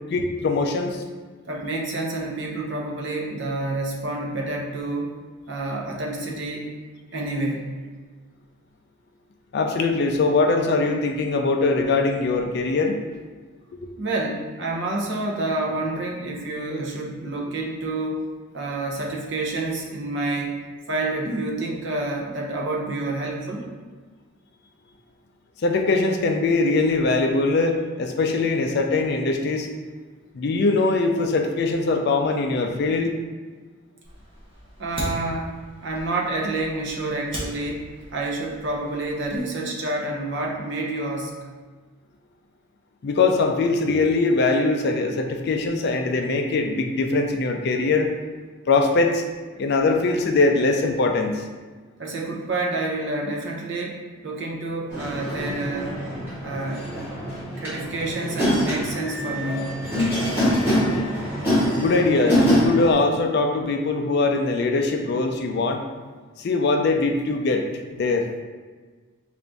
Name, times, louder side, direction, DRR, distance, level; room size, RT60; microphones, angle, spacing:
voice 1, 0.1-1.0 9.5-13.0 25.6-29.7 30.3-33.1 43.0-48.1 48.7-49.2 49.6-51.4 61.7-65.8 66.4-67.6 68.0-68.3, left 3 dB, 50° left, 4 dB, 0.3 m, -22 dB
voice 2, 1.5-5.2 5.5-6.7 7.1-7.7 14.0-18.3 18.5-20.6 20.9-23.7 34.8-41.4 52.0-54.0 54.2-56.0 56.4-57.0 57.6-59.8, right 2 dB, 55° right, -1 dB, 0.6 m, -28 dB
Fire, 34.0-39.4, equal, 25° right, 0.9 m, -38 dB
sound 1, 54.9-62.9, equal, 10° right, 1.4 m, -25 dB
3.9 x 2.5 x 3.4 m, 1.4 s
head